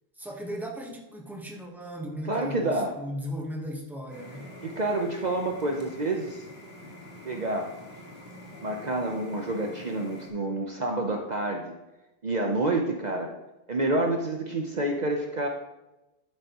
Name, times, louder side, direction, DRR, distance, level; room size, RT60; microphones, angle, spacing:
voice 1, 0.2-4.5, equal, ahead, 0 dB, 1.2 m, -37 dB
voice 2, 2.3-3.0 4.6-6.4 7.2-7.7 8.6-11.7 12.2-13.3 13.7-15.5, right 2 dB, 45° right, 2 dB, 0.9 m, -28 dB
sound 1, 4.1-10.3, left 1 dB, 80° left, 2.1 m, -46 dB
11.0 x 8.8 x 3.0 m, 0.98 s
omnidirectional pair, 1.0 m